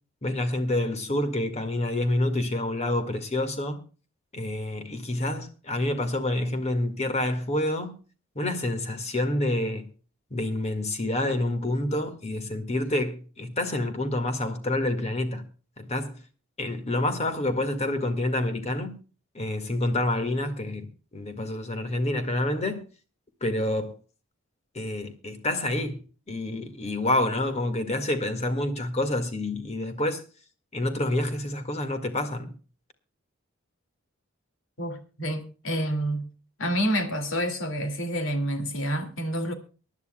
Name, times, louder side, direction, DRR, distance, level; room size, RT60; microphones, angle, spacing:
voice 1, 0.2-3.8 4.3-8.0 8.4-9.9 10.3-15.4 15.8-16.2 16.6-19.0 19.3-22.8 23.4-23.9 24.7-30.2 30.7-32.5, left 1 dB, 30° left, 1.8 m, -28 dB
voice 2, 34.8-36.2 36.6-39.5, equal, 70° left, 2.4 m, -28 dB
24.0 x 11.0 x 2.2 m
head